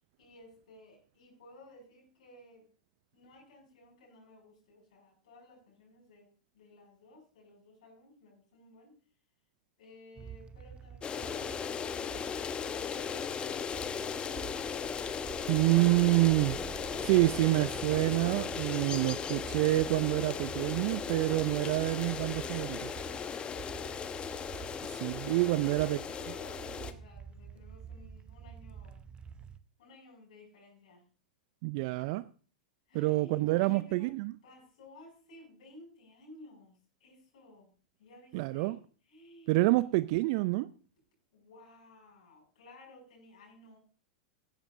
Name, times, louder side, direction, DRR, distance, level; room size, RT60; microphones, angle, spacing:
voice 1, 0.2-2.7 3.1-6.3 6.5-9.0 9.8-13.5 24.7-29.0 29.8-31.0 31.9-32.1 32.9-34.1 34.4-37.7 38.0-38.8 39.1-39.8 41.3-43.8, left 1 dB, 65° left, 6.3 m, -56 dB
sound 1, 10.2-29.6, right 7 dB, 25° right, 0.7 m, -48 dB
sound 2, 11.0-26.9, left 7 dB, 25° left, 0.9 m, -37 dB
voice 2, 15.5-16.6 17.0-22.9 25.0-26.0 31.6-32.2 32.9-34.3 38.3-38.8 39.5-40.7, right 20 dB, 50° right, 0.4 m, -27 dB
15.0 x 12.0 x 2.6 m
hypercardioid pair, 100°, 4 cm